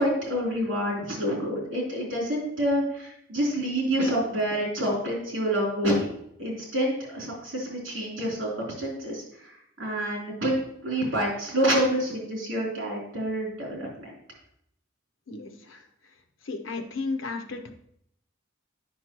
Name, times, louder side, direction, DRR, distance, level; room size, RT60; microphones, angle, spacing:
voice 1, 0.0-6.1 6.4-10.5 10.8-14.1, equal, 75° right, -3 dB, 3.2 m, -28 dB
voice 2, 15.3-15.8 16.4-17.7, left 3 dB, 90° left, 7 dB, 0.8 m, -34 dB
9.0 x 6.0 x 3.0 m, 0.72 s
head